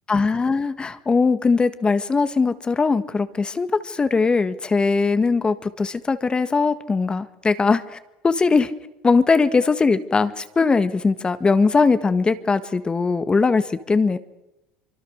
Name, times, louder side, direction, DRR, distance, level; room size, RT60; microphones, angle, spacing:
voice 1, 0.1-7.8 8.2-8.7 9.0-14.2, left 4 dB, 20° left, 12 dB, 1.6 m, -20 dB
24.5 x 24.0 x 6.5 m, 0.94 s
supercardioid pair, 95°, 4 cm